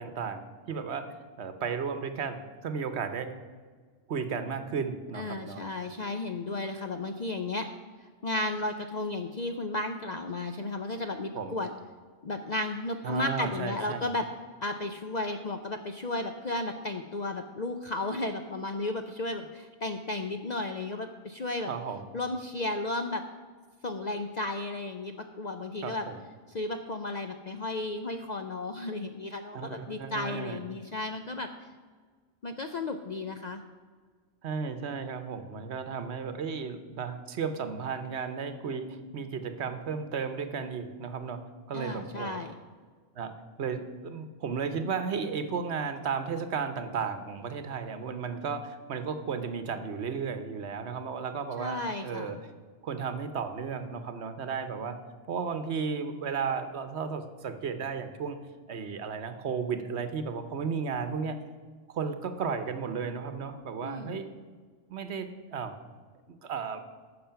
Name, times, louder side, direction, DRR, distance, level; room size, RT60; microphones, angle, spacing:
voice 1, 0.0-3.3 4.1-5.6 11.3-11.5 13.0-14.0 21.7-22.0 25.8-26.2 29.5-30.6 34.4-41.4 41.7-42.4 43.2-43.3 43.6-52.4 52.8-55.0 55.3-58.4 58.7-61.4 61.9-64.3 64.9-65.7 66.3-66.8, right 6 dB, 60° right, 9 dB, 1.1 m, -34 dB
voice 2, 5.1-7.7 8.0-11.7 12.2-14.3 14.6-21.7 22.1-23.2 23.8-26.1 26.5-31.5 32.4-33.6 41.7-42.5 51.6-52.4 63.8-64.2, left 2 dB, 50° left, 6 dB, 0.5 m, -34 dB
14.5 x 6.1 x 5.7 m, 1.5 s
omnidirectional pair, 1.3 m